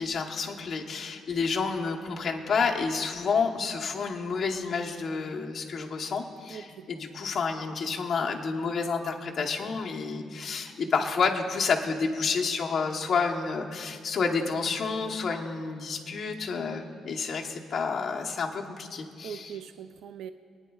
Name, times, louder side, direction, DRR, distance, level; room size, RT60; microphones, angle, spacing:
voice 1, 0.0-19.5, left 5 dB, 40° left, 0 dB, 1.0 m, -29 dB
voice 2, 6.5-6.9 11.0-11.1 19.2-20.3, right 8 dB, 80° right, 10 dB, 0.4 m, -41 dB
27.0 x 9.5 x 2.3 m, 2.2 s
cardioid pair, 160°, 0 cm